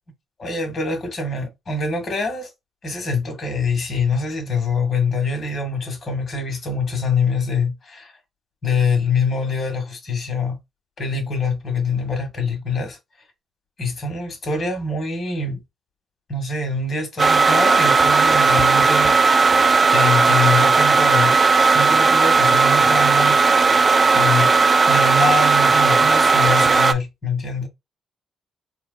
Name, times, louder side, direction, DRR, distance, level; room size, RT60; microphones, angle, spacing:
voice 1, 0.4-2.5 2.8-8.1 8.6-10.6 11.0-13.0 13.8-15.6 16.3-19.5 19.9-21.4 21.7-23.4 24.1-24.5 24.9-27.7, left 4 dB, 45° left, 1.7 m, -24 dB
sound 1, 17.2-26.9, right 4 dB, 30° right, 0.4 m, -15 dB
4.3 x 2.5 x 2.2 m
cardioid pair, 90°, 0 cm